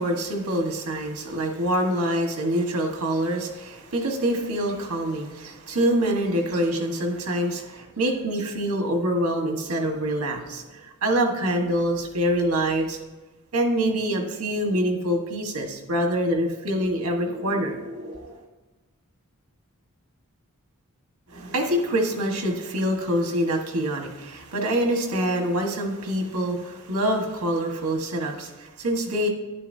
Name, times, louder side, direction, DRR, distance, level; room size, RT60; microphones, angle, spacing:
voice 1, 0.0-13.0 13.5-18.4 21.3-29.3, right 1 dB, 85° right, 2 dB, 1.5 m, -25 dB
11.5 x 10.0 x 2.7 m, 1.2 s
head